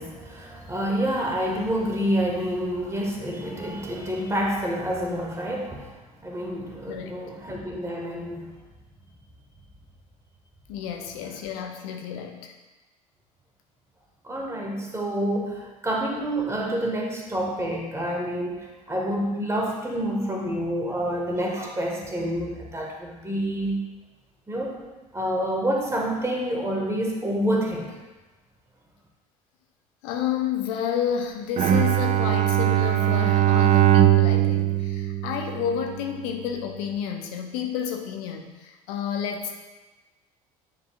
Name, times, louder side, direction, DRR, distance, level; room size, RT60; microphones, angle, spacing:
voice 1, 0.0-8.5 14.2-23.8 24.5-24.8 25.1-27.9, equal, 15° right, -1 dB, 1.7 m, -28 dB
voice 2, 10.7-12.5 30.0-39.5, left 8 dB, 65° left, 3 dB, 0.7 m, -30 dB
Bowed string instrument, 31.6-36.0, right 12 dB, 40° right, 0.5 m, -20 dB
9.3 x 4.9 x 2.4 m, 1.2 s
figure-of-eight pair, 60°, 18 cm